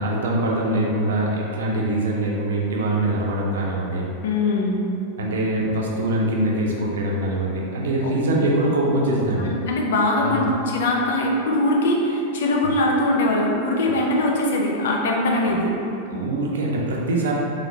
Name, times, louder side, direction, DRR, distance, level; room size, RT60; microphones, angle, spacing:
voice 1, 0.0-4.1 5.2-9.5 10.2-10.5 16.1-17.3, right 1 dB, 60° right, -3 dB, 0.6 m, -23 dB
voice 2, 4.2-4.8 8.0-8.1 9.5-15.7, left 1 dB, 60° left, -1 dB, 0.5 m, -21 dB
3.8 x 3.1 x 2.8 m, 2.8 s
figure-of-eight pair, 90°, 0 cm